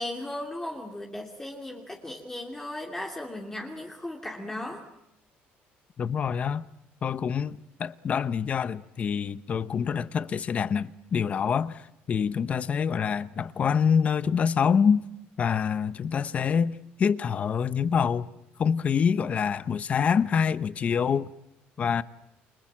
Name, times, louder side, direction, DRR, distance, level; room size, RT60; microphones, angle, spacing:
voice 1, 0.0-4.8, left 1 dB, 10° left, 2.7 m, -36 dB
voice 2, 6.0-6.6 7.0-15.0 15.4-18.3 18.6-21.3 21.8-22.0, left 7 dB, 35° left, 0.9 m, -26 dB
29.0 x 23.5 x 7.5 m
cardioid pair, 140°, 4 cm